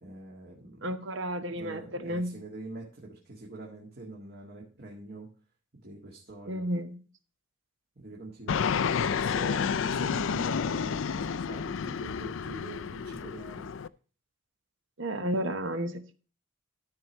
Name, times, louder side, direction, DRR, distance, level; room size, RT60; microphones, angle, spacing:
voice 1, 0.0-0.9 1.5-5.3 5.7-6.7 8.0-13.7, right 2 dB, 50° right, 2.0 m, -44 dB
voice 2, 0.8-2.3 6.5-7.0 15.0-16.2, right 1 dB, 65° right, 1.1 m, -32 dB
Fixed-wing aircraft airplane, 8.5-13.9, left 6 dB, 70° left, 0.4 m, -30 dB
13.5 x 4.6 x 5.3 m
head